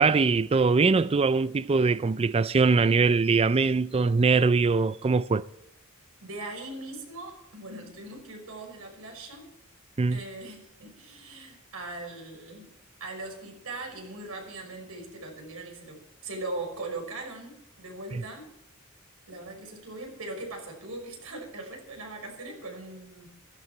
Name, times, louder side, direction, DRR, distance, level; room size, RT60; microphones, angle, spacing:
voice 1, 0.0-5.4 10.0-10.2 18.1-18.2, right 4 dB, 25° right, 0.4 m, -22 dB
voice 2, 6.2-9.5 10.1-12.7 13.0-18.5 19.3-23.3, right 2 dB, 85° right, 5.7 m, -40 dB
15.5 x 14.0 x 4.5 m
head